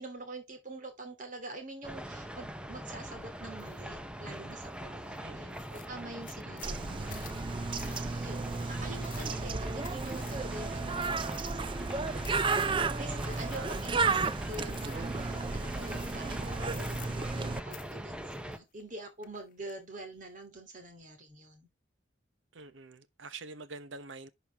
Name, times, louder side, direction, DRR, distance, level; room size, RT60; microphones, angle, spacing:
voice 1, 0.0-12.1 13.0-21.7, right 2 dB, 45° right, 2.8 m, -46 dB
sound 1, 1.8-18.6, equal, 5° right, 0.8 m, -42 dB
sound 2, 3.6-3.8 4.3-4.8 5.1-5.2 5.5-12.9 13.3-14.1 14.5-15.1 15.7-16.3 16.6-17.4 17.7-18.9 19.2-19.8, left 11 dB, 45° left, 1.0 m, -52 dB
voice 2, 5.2-5.7 13.1-13.7 22.5-24.3, right 3 dB, 85° right, 1.0 m, -46 dB
Bird, 6.6-17.6, right 4 dB, 25° right, 0.5 m, -33 dB
11.0 x 4.9 x 3.5 m
head